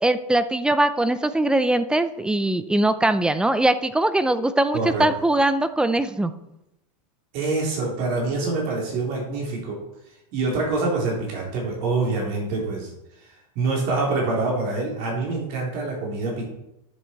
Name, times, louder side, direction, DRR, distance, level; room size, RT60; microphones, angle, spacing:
voice 1, 0.0-6.3, right 1 dB, 5° right, 12 dB, 0.4 m, -21 dB
voice 2, 4.7-5.1 7.3-9.8 10.3-12.9 13.2-16.4, right 3 dB, 45° right, -3 dB, 3.7 m, -25 dB
11.0 x 7.1 x 4.6 m, 0.88 s
supercardioid pair, 145°, 21 cm